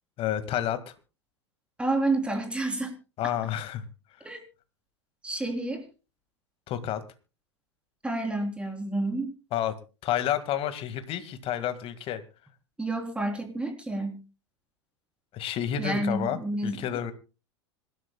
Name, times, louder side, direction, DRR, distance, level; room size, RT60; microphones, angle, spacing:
voice 1, 0.2-0.9 3.2-3.9 6.7-7.0 9.5-9.8 10.0-12.2 15.3-17.1, left 10 dB, 40° left, 11 dB, 1.9 m, -30 dB
voice 2, 1.8-2.9 4.2-4.4 5.2-5.8 8.0-9.3 12.8-14.2 15.8-16.8, right 2 dB, 5° right, 4 dB, 3.6 m, -29 dB
26.0 x 12.5 x 2.3 m, 0.32 s
figure-of-eight pair, 90°, 15 cm